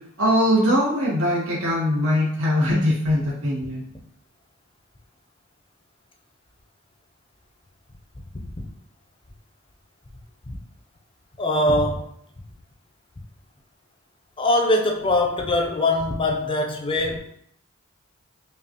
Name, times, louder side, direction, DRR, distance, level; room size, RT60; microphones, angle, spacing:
voice 1, 0.2-3.8, equal, 80° right, -6 dB, 1.3 m, -21 dB
voice 2, 11.4-12.1 14.4-17.2, left 2 dB, 25° left, 2 dB, 0.5 m, -22 dB
5.3 x 2.3 x 2.9 m, 0.68 s
head